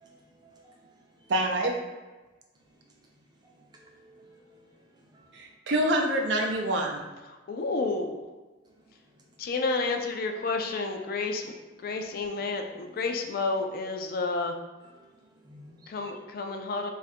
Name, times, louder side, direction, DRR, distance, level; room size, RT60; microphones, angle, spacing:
voice 1, 0.0-0.8 3.4-3.5 4.0-4.6 5.1-5.3 10.4-10.5 14.8-15.0 15.5-16.2, right 1 dB, 25° right, -1 dB, 0.5 m, -54 dB
voice 2, 1.3-1.7 5.3-7.0, right 1 dB, 70° right, 2 dB, 0.5 m, -26 dB
voice 3, 7.5-8.2 9.4-11.4 11.8-14.5 15.9-16.9, left 3 dB, 50° left, 4 dB, 0.3 m, -30 dB
2.6 x 2.5 x 4.1 m, 1.2 s
head